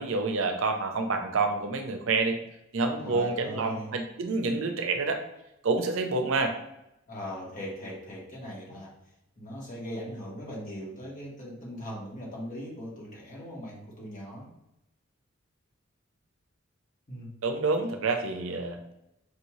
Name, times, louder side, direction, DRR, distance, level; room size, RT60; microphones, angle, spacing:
voice 1, 0.0-2.4 2.7-5.2 5.6-6.5 17.4-18.8, right 3 dB, 70° right, 5 dB, 0.5 m, -28 dB
voice 2, 3.0-3.9 7.1-8.9 9.4-14.5 17.1-17.3, equal, 40° left, -4 dB, 1.5 m, -39 dB
5.1 x 2.7 x 3.1 m, 0.86 s
head